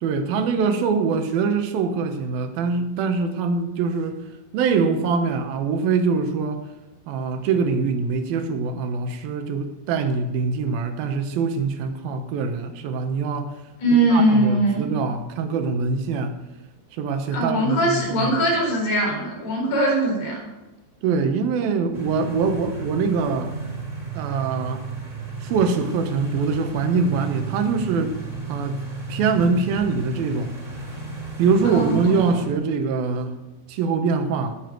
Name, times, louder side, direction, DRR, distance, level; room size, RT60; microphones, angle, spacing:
voice 1, 0.0-4.2 4.5-6.6 7.1-13.6 14.1-16.4 16.9-18.3 21.0-23.5 24.1-24.9 25.4-28.1 28.5-28.8 29.1-30.5 31.4-33.3 33.7-34.5, right 5 dB, 70° right, 7 dB, 2.7 m, -23 dB
voice 2, 13.8-14.9 17.3-20.4 31.6-32.2, right 1 dB, 75° left, -2 dB, 6.5 m, -21 dB
sound 1, 21.9-32.5, right 3 dB, 20° right, 2.4 m, -33 dB
19.0 x 7.1 x 4.6 m, 1.1 s
omnidirectional pair, 4.8 m